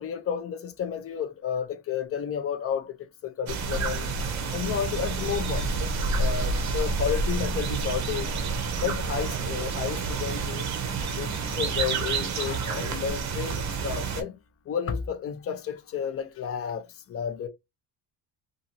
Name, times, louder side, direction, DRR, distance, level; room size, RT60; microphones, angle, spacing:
voice 1, 0.0-3.0 3.2-4.1 4.5-8.3 8.8-10.7 11.2-14.4 14.7-17.5, left 8 dB, 35° left, 0.5 m, -32 dB
sound 1, 3.5-14.2, right 4 dB, 40° right, 0.6 m, -29 dB
2.7 x 2.5 x 2.7 m
cardioid pair, 125°, 44 cm